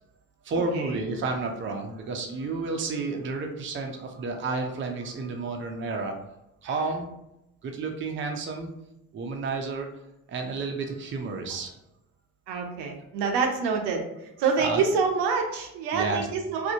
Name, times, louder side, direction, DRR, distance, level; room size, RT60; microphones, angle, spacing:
voice 1, 0.4-6.2 6.6-7.1 7.6-8.7 9.1-9.9 10.3-11.7 14.6-14.8 15.9-16.3, right 3 dB, 30° right, 3 dB, 0.5 m, -31 dB
voice 2, 12.5-14.1 14.4-16.7, right 5 dB, 70° right, 3 dB, 0.6 m, -26 dB
2.6 x 2.1 x 2.7 m, 0.87 s
hypercardioid pair, 55°, 43 cm